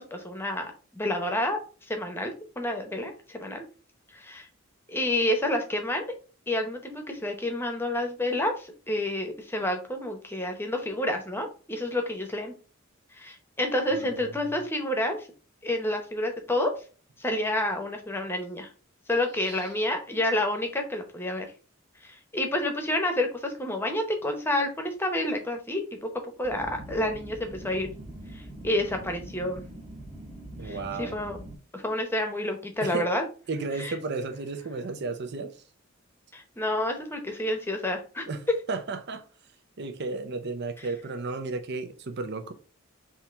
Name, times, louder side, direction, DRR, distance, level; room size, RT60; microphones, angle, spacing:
voice 1, 0.0-1.6 1.9-3.6 4.1-4.5 4.9-6.1 6.5-12.5 13.1-15.3 15.6-16.7 17.2-18.7 19.1-21.5 22.0-26.1 26.4-27.9 28.3-29.6 30.6-31.4 31.7-33.2 33.8-34.0 36.3-38.6, left 1 dB, 10° left, 0.9 m, -29 dB
voice 2, 13.9-14.4 19.4-19.7 30.6-31.2 32.8-33.1 33.5-35.6 38.3-39.2 39.8-42.5, right 3 dB, 60° right, 0.6 m, -34 dB
sound 1, 26.4-31.6, right 1 dB, 35° right, 1.4 m, -43 dB
3.7 x 2.9 x 4.3 m
head